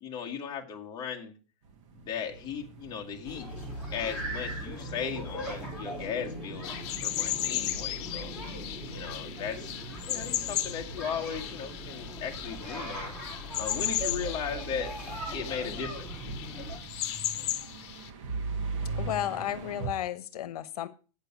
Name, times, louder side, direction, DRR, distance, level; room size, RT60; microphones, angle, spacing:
voice 1, 0.0-1.3 1.9-3.5 3.9-6.7 7.0-8.3 8.9-13.1 13.6-14.9 15.3-16.0, left 7 dB, 20° left, 1 dB, 1.6 m, -37 dB
sound 1, 1.6-19.9, right 4 dB, 50° right, 1.8 m, -43 dB
sound 2, 3.2-16.8, equal, 5° right, 4.8 m, -40 dB
sound 3, 6.6-18.1, left 12 dB, 50° left, 1.2 m, -36 dB
voice 2, 19.0-20.9, left 12 dB, 80° left, 15 dB, 0.9 m, -33 dB
8.7 x 6.7 x 6.8 m, 0.36 s
supercardioid pair, 160°, 19 cm